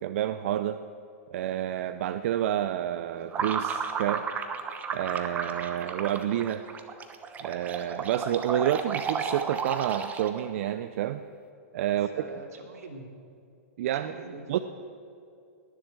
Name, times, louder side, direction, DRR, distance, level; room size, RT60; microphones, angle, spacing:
voice 1, 0.0-0.8 1.3-4.3 4.9-6.6 7.4-11.2 11.7-12.1 13.8-14.1 14.5-14.6, right 11 dB, 60° right, 11 dB, 0.6 m, -29 dB
sound 1, 3.3-10.5, right 6 dB, 20° right, 1.0 m, -33 dB
voice 2, 11.9-13.0 13.9-14.6, right 3 dB, 85° right, 2 dB, 2.8 m, -44 dB
20.5 x 7.4 x 7.7 m, 2.5 s
hypercardioid pair, 140°, 8 cm